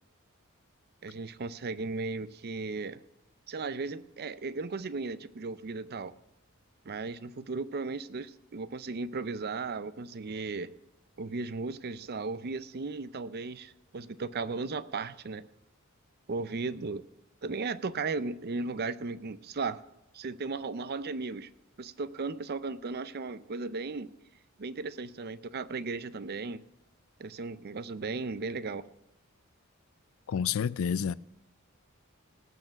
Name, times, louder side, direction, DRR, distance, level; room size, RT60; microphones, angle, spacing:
voice 1, 1.0-3.0 3.5-6.1 6.8-10.7 11.2-15.5 16.3-17.0 17.4-19.8 20.1-21.5 21.8-24.1 24.6-26.6 27.2-28.9, right 4 dB, 50° right, 0.6 m, -36 dB
voice 2, 30.3-31.1, left 7 dB, 75° left, 0.4 m, -29 dB
18.5 x 6.6 x 5.8 m
head